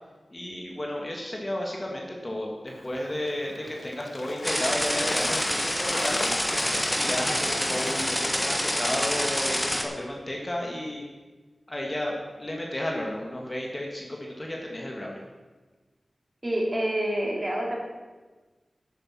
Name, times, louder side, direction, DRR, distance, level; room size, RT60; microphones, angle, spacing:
voice 1, 0.3-6.3 7.0-11.1 11.7-15.2, left 1 dB, 25° left, -1 dB, 1.9 m, -33 dB
Bird / Water, 2.7-9.4, left 2 dB, 50° left, 0.8 m, -37 dB
sound 1, 4.4-9.8, equal, 10° left, 1.3 m, -27 dB
voice 2, 16.4-17.7, right 1 dB, 30° right, -2 dB, 3.1 m, -27 dB
10.0 x 9.1 x 6.1 m, 1.3 s
wide cardioid pair, 95°, 0 cm